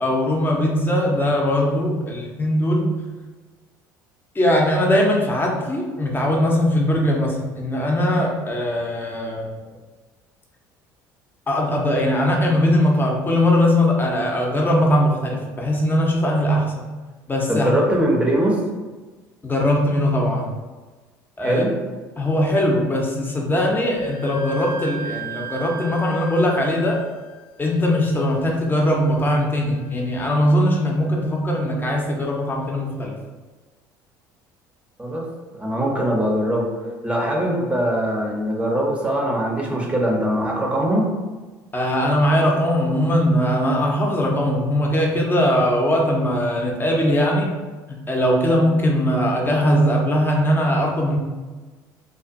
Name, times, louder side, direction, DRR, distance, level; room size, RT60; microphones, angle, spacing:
voice 1, 0.0-2.9 4.3-9.5 11.5-16.8 17.3-17.7 19.4-20.5 21.4-21.6 22.2-27.0 27.6-33.1 41.7-47.5 47.9-51.2, left 1 dB, 20° left, -1 dB, 0.7 m, -20 dB
voice 2, 17.5-18.6 21.4-21.7 35.0-35.2 35.6-36.7 37.0-41.0, right 1 dB, 15° right, -2 dB, 0.7 m, -21 dB
Wind instrument woodwind instrument, 24.0-31.4, right 4 dB, 65° left, 0.4 m, -39 dB
2.5 x 2.5 x 2.5 m, 1.3 s
hypercardioid pair, 65°, 9 cm